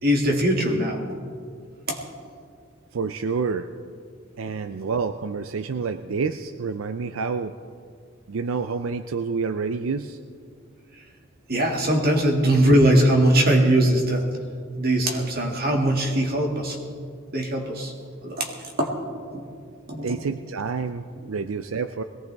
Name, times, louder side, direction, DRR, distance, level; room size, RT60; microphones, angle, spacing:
voice 1, 0.0-1.0 1.9-2.2 11.0-11.1 11.5-14.4 14.8-16.8 17.3-17.9 18.2-18.9 19.3-19.4 19.9-20.2, right 1 dB, 50° right, 1 dB, 2.2 m, -21 dB
voice 2, 2.9-3.7 4.4-7.6 8.3-10.2 20.0-22.0, right 5 dB, 90° right, 9 dB, 0.5 m, -28 dB
21.0 x 17.5 x 3.5 m, 2.2 s
head